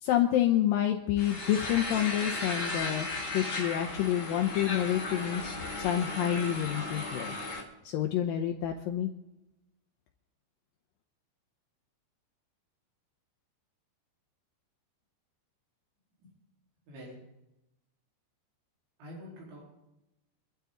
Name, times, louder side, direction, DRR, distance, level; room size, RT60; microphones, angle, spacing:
voice 1, 0.0-3.1 3.3-5.4 5.8-7.3 7.8-9.1, left 11 dB, 75° left, 3 dB, 2.2 m, -28 dB
sound 1, 1.2-7.6, left 2 dB, 30° left, 3.2 m, -36 dB
voice 2, 16.9-17.2 19.0-19.8, equal, 85° right, -5 dB, 6.5 m, -47 dB
25.5 x 12.0 x 3.9 m, 0.92 s
omnidirectional pair, 5.0 m